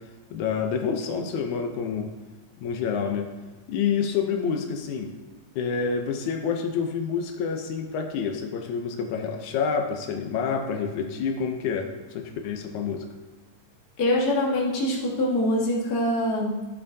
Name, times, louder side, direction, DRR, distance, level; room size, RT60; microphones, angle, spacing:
voice 1, 0.3-2.1 2.6-3.3 3.7-5.1 5.6-13.1, left 6 dB, 85° left, 4 dB, 2.2 m, -28 dB
voice 2, 14.0-16.7, left 1 dB, 40° left, -3 dB, 1.8 m, -24 dB
12.0 x 7.5 x 2.7 m, 1.2 s
omnidirectional pair, 3.3 m